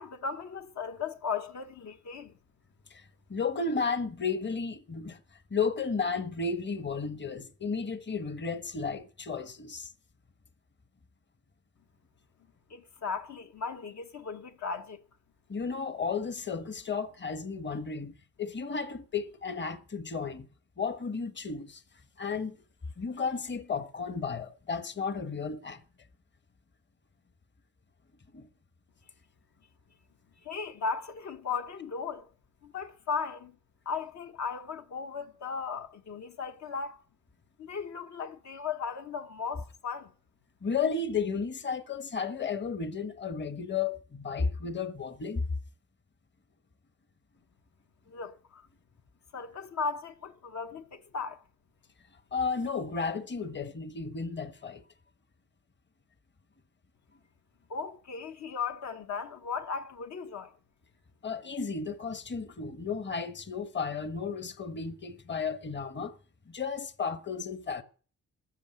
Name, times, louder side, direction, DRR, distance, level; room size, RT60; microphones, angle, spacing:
voice 1, 0.0-2.3 12.7-15.0 30.4-32.3 32.6-33.5 33.8-37.0 37.6-40.1 48.1-48.7 49.3-51.4 57.7-60.5, left 5 dB, 65° left, 1.1 m, -36 dB
voice 2, 3.3-5.2 5.5-9.9 15.5-20.5 20.8-21.8 22.2-22.6 23.0-25.8 28.3-28.5 40.6-45.5 52.3-54.8 61.2-66.1 66.5-67.8, left 5 dB, 35° left, 1.2 m, -33 dB
14.0 x 6.7 x 9.7 m
cardioid pair, 95°, 30 cm